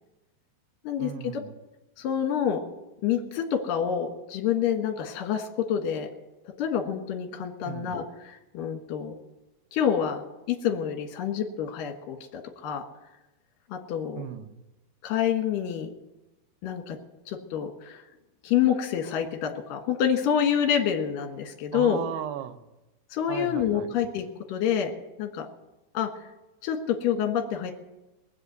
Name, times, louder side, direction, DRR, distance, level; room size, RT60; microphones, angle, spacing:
voice 1, 1.0-1.6 7.6-8.0 14.2-14.6 21.7-22.6 23.3-23.9, right 10 dB, 75° right, 9 dB, 2.4 m, -36 dB
voice 2, 2.0-2.6 3.0-6.1 6.6-9.1 9.7-10.2 10.5-12.8 13.7-14.2 15.0-15.9 16.6-17.0 17.3-18.0 18.4-22.0 23.1-24.9 25.2-25.5 25.9-26.1 26.6-27.7, left 8 dB, 65° left, 5 dB, 2.9 m, -27 dB
20.0 x 8.1 x 8.0 m, 1.0 s
omnidirectional pair, 4.8 m